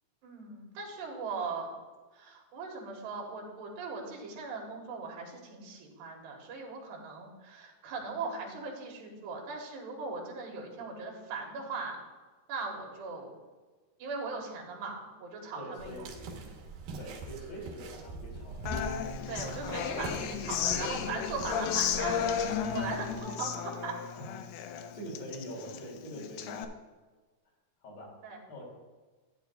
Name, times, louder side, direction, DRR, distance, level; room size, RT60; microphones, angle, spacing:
voice 1, 0.2-1.7 2.1-12.0 12.5-13.4 14.0-16.4 19.3-22.2 22.7-24.0 28.2-28.4, right 4 dB, 85° right, 0 dB, 3.8 m, -39 dB
voice 2, 15.6-16.1 17.0-18.7 24.9-26.7 27.8-28.2 28.5-28.6, equal, 65° left, -3 dB, 4.3 m, -43 dB
sound 1, 15.8-23.2, right 3 dB, 70° right, 2.8 m, -43 dB
Human voice / Acoustic guitar, 18.7-26.6, left 8 dB, 80° left, 2.5 m, -34 dB
14.0 x 9.3 x 2.3 m, 1.3 s
omnidirectional pair, 4.7 m